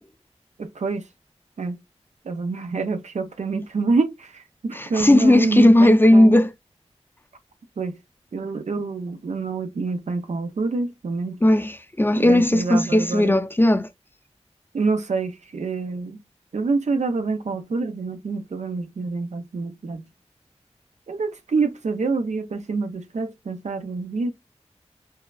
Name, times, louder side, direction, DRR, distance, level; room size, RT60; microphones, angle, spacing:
voice 1, 0.6-1.0 1.6-1.8 2.2-6.4 7.8-7.9 8.3-11.4 12.1-13.3 14.7-16.2 16.5-20.0 21.1-24.3, right 4 dB, 85° right, 0.7 m, -26 dB
voice 2, 4.7-6.5 11.4-13.9, left 1 dB, 20° left, 0.6 m, -16 dB
5.5 x 2.1 x 2.3 m
cardioid pair, 45°, 12 cm